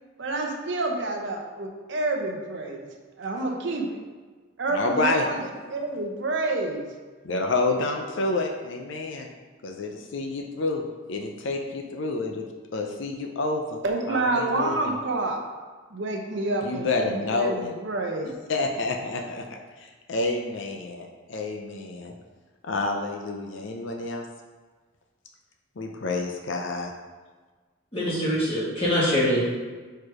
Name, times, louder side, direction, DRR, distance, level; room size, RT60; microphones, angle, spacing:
voice 1, 0.2-2.9 3.2-4.0 4.6-6.9 13.8-15.4 15.9-18.3, right 2 dB, 60° right, 2 dB, 0.8 m, -28 dB
voice 2, 4.7-5.3 7.2-9.3 9.6-10.8 11.1-12.4 12.7-13.8 14.1-14.9 16.6-17.7 18.5-22.1 22.6-24.3 25.8-26.9, left 2 dB, 60° left, 2 dB, 0.5 m, -29 dB
voice 3, 27.9-29.4, equal, 25° left, -8 dB, 1.9 m, -23 dB
4.8 x 4.5 x 4.8 m, 1.4 s
head